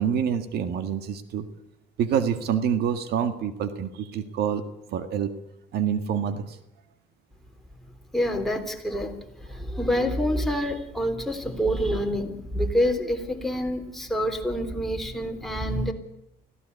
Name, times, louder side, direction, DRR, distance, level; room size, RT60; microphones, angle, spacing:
voice 1, 0.0-1.5 2.0-4.6 4.9-5.3 5.7-6.6, right 8 dB, 70° right, 9 dB, 1.8 m, -26 dB
voice 2, 8.1-15.9, equal, ahead, 3 dB, 3.6 m, -27 dB
25.0 x 16.5 x 8.2 m, 0.84 s
cardioid pair, 110°, 17 cm